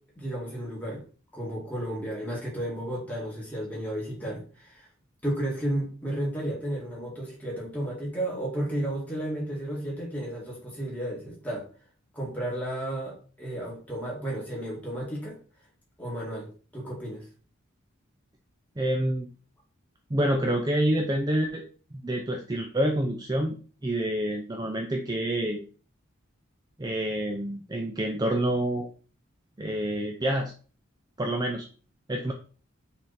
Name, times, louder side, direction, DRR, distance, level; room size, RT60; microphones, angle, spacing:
voice 1, 0.2-1.0 1.3-4.9 5.2-11.7 12.1-15.4 16.0-17.2, right 1 dB, 5° left, -4 dB, 2.3 m, -33 dB
voice 2, 18.8-19.3 20.1-21.7 21.9-23.6 23.8-25.6 26.8-28.9 29.6-30.5 31.2-31.7 32.1-32.3, right 1 dB, 20° right, 2 dB, 0.5 m, -27 dB
6.2 x 3.7 x 4.3 m, 0.39 s
head